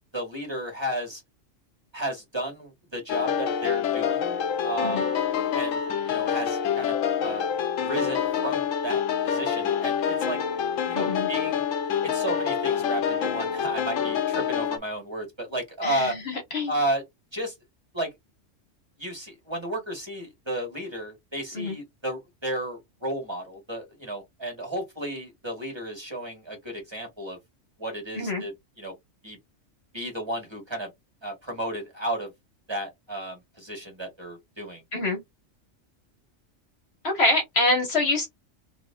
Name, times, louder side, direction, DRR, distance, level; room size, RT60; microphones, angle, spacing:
voice 1, 0.1-1.2 1.9-4.4 4.6-5.1 5.5-7.5 7.8-10.4 10.9-11.6 12.0-16.2 16.7-17.0 17.3-17.6 17.9-18.1 19.0-27.4 27.8-28.5 28.8-28.9 29.2-29.4 29.9-30.9 31.2-32.3 32.7-34.8, right 1 dB, 20° right, 1.8 m, -33 dB
sound 1, 3.1-14.8, left 8 dB, 85° left, 1.0 m, -27 dB
voice 2, 10.9-11.3 15.8-16.7 21.5-21.8 28.1-28.4 34.9-35.2 37.0-38.3, left 2 dB, 55° left, 1.5 m, -25 dB
4.0 x 3.1 x 2.3 m
omnidirectional pair, 1.3 m